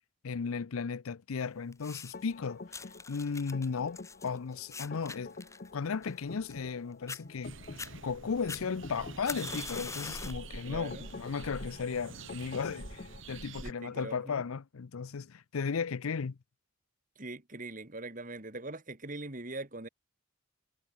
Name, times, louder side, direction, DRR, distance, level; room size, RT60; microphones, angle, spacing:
voice 1, 0.2-2.6 3.1-5.3 5.7-7.5 8.0-16.4, left 5 dB, 85° left, 0.6 m, -35 dB
sound 1, 1.7-2.3 2.7-6.8 7.1-7.2 7.6-7.9 8.5-10.5 10.9-11.3 12.0-12.1, left 4 dB, 15° left, 1.6 m, -43 dB
sound 2, 2.1-13.2, left 3 dB, 45° left, 0.7 m, -48 dB
sound 3, 7.4-13.7, right 4 dB, 65° right, 1.9 m, -46 dB
voice 2, 10.6-11.1 13.6-14.5 17.2-19.9, right 2 dB, 40° right, 2.1 m, -42 dB
head